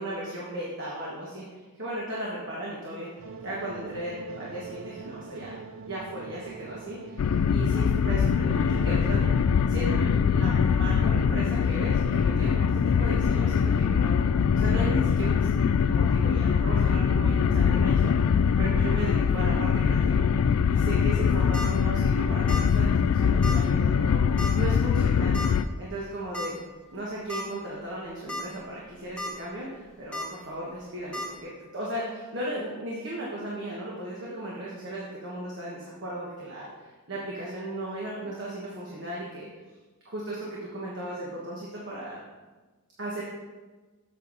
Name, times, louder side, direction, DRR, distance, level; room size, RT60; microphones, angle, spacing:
voice 1, 0.0-3.1 3.4-5.6 5.9-9.4 9.7-15.4 15.9-20.3 20.6-24.2 24.5-25.3 25.8-26.6 26.9-39.5 40.0-42.2 43.0-43.2, right 1 dB, 55° right, -5 dB, 1.4 m, -36 dB
sound 1, 3.2-8.9, right 5 dB, 70° right, 0.4 m, -43 dB
sound 2, 7.2-25.6, left 6 dB, 75° left, 0.3 m, -23 dB
sound 3, 21.3-21.7 22.5-22.7 23.0-23.1 23.4-23.6 24.4-24.7 25.3-25.5 26.3-26.5 26.9-27.0 27.3-27.4 28.1-28.4 28.8-29.3 30.1-30.3 31.1-31.3, left 1 dB, 5° left, 1.2 m, -33 dB
8.2 x 6.3 x 4.1 m, 1.3 s
head